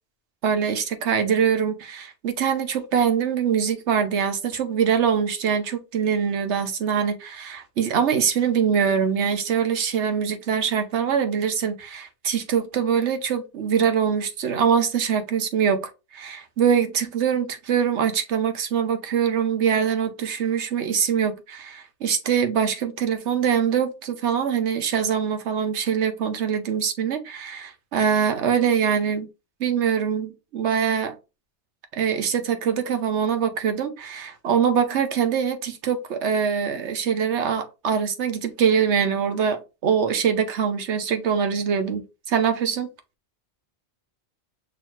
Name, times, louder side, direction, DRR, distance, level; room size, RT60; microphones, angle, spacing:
voice 1, 0.4-15.8 16.1-29.3 29.6-31.2 31.9-42.9, right 7 dB, 80° right, 1.1 m, -23 dB
6.0 x 2.8 x 3.1 m
omnidirectional pair, 1.2 m